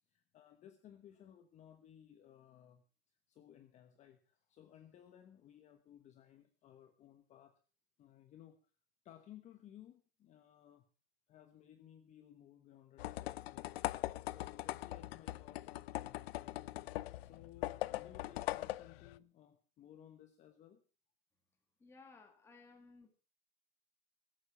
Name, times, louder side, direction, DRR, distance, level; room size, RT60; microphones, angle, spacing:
voice 1, 0.1-7.6 8.0-8.6 9.0-10.9 11.3-16.7 17.2-20.8, left 10 dB, 25° left, 8 dB, 1.1 m, -59 dB
sound 1, 13.0-19.2, left 16 dB, 85° left, 0.7 m, -41 dB
voice 2, 21.8-23.1, left 4 dB, 10° left, 2 dB, 1.6 m, -59 dB
20.0 x 8.5 x 5.6 m, 0.37 s
supercardioid pair, 165°, 30 cm